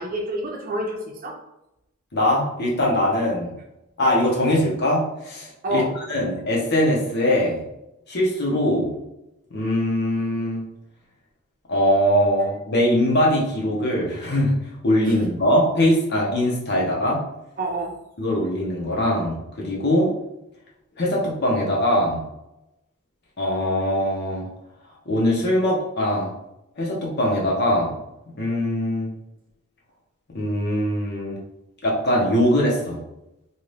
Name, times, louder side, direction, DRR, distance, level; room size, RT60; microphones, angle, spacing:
voice 1, 0.0-1.3 5.6-5.9 15.0-15.2 17.6-17.9, right 1 dB, 40° right, 0 dB, 0.6 m, -28 dB
voice 2, 2.1-3.5 4.0-7.7 8.1-8.9 9.5-10.6 11.7-14.5 14.8-17.2 18.2-20.1 21.0-22.2 23.4-24.5 25.1-26.3 26.8-28.0 28.4-29.1 30.3-31.4 31.8-33.0, left 1 dB, 55° left, -3 dB, 0.9 m, -21 dB
2.7 x 2.5 x 3.2 m, 0.86 s
head